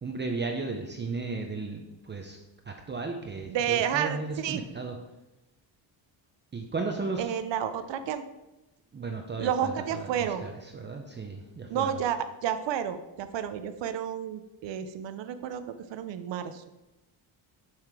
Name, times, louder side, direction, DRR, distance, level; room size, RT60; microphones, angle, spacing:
voice 1, 0.0-2.4 2.7-5.0 6.5-7.3 8.9-12.0, right 3 dB, 25° right, 2 dB, 0.7 m, -35 dB
voice 2, 3.5-4.6 7.2-8.2 9.4-10.5 11.7-16.6, right 9 dB, 70° right, 10 dB, 0.7 m, -31 dB
7.7 x 5.7 x 4.8 m, 0.99 s
cardioid pair, 145°, 45 cm